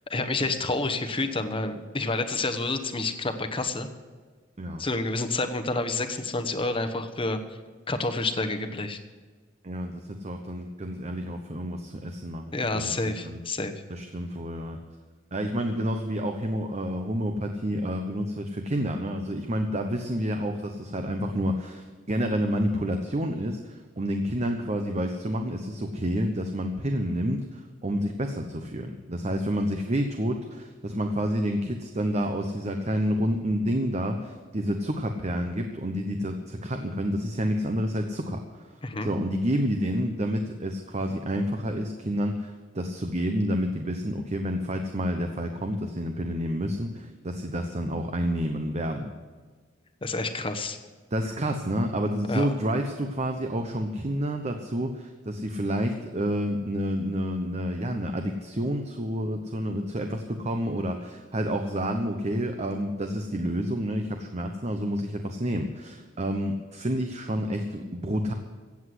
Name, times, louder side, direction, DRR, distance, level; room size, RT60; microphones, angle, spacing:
voice 1, 0.1-3.9 4.8-7.4 7.9-9.0 12.5-13.7 38.8-39.1 50.0-50.8 52.3-52.5, left 2 dB, 30° left, 8 dB, 1.1 m, -29 dB
voice 2, 9.6-13.4 13.9-14.8 15.3-38.7 39.0-49.1 50.2-50.5 51.1-68.3, equal, 35° right, 5 dB, 0.9 m, -29 dB
16.0 x 8.2 x 7.8 m, 1.4 s
head